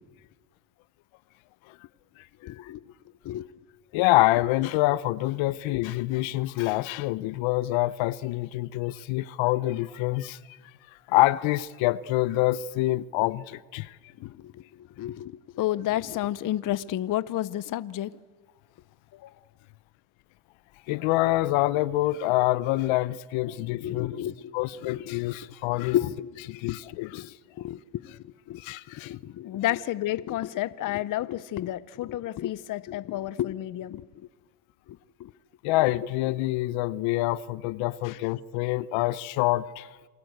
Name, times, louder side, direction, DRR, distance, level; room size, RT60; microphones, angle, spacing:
voice 1, 2.4-2.8 3.2-3.5 14.2-18.1 19.1-19.3 23.5-24.6 24.8-25.5 25.8-26.4 26.6-27.3 27.6-28.6 29.0-34.3 34.9-35.3 38.0-38.2, left 13 dB, 40° left, 0.7 m, -32 dB
voice 2, 3.9-10.6 11.1-14.0 20.9-24.1 24.5-26.0 26.5-27.3 28.6-29.1 35.6-39.9, left 17 dB, 65° left, 0.9 m, -26 dB
28.5 x 22.0 x 8.0 m
supercardioid pair, 110°, 49 cm